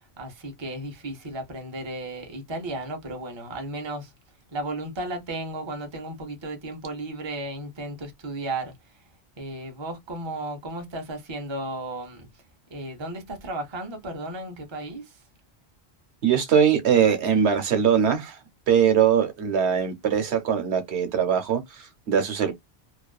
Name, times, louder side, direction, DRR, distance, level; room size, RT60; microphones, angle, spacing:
voice 1, 0.2-4.1 4.5-8.7 9.4-12.3 12.7-15.1, right 2 dB, 30° right, 0.6 m, -34 dB
voice 2, 16.2-18.4 18.7-22.5, right 8 dB, 80° right, 1.0 m, -21 dB
2.5 x 2.3 x 2.3 m
omnidirectional pair, 1.1 m